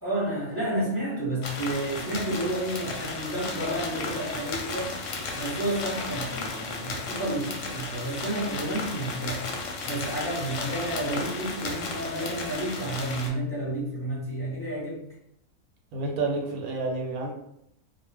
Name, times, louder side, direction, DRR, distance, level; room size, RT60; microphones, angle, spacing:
voice 1, 0.0-4.9 5.3-9.4 9.8-15.0, right 1 dB, 15° left, -7 dB, 0.5 m, -31 dB
sound 1, 1.4-13.3, left 3 dB, 65° left, 0.8 m, -34 dB
voice 2, 15.9-17.3, right 3 dB, 75° right, 1 dB, 1.0 m, -29 dB
2.3 x 2.2 x 3.2 m, 0.75 s
omnidirectional pair, 1.6 m